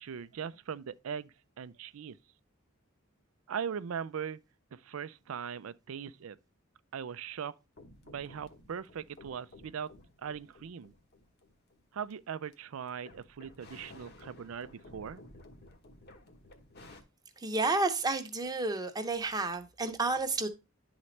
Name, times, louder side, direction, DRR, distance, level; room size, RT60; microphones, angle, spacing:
voice 1, 0.0-2.2 3.5-4.4 4.7-6.4 6.9-7.6 8.0-9.9 10.2-10.9 11.9-15.2, right 7 dB, 85° right, 0.4 m, -40 dB
sound 1, 7.8-12.5 12.9-17.0, left 2 dB, 55° left, 1.2 m, -54 dB
voice 2, 17.4-20.5, right 3 dB, 20° right, 0.8 m, -31 dB
11.0 x 4.0 x 3.2 m
head